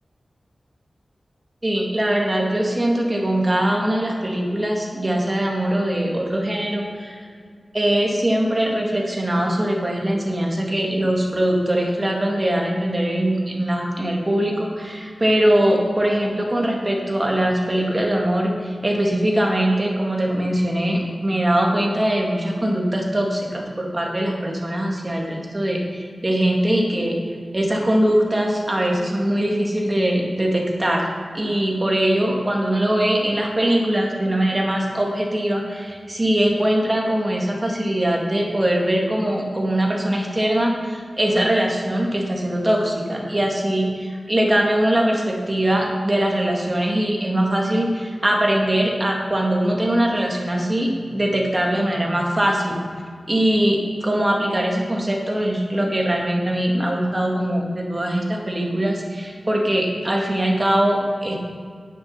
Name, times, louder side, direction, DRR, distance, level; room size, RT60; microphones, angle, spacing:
voice 1, 1.6-7.3 7.7-27.2 27.5-31.1 31.3-52.8 53.3-61.4, right 1 dB, 25° right, 0 dB, 1.8 m, -21 dB
9.6 x 7.0 x 5.7 m, 2.1 s
wide cardioid pair, 100°, 0 cm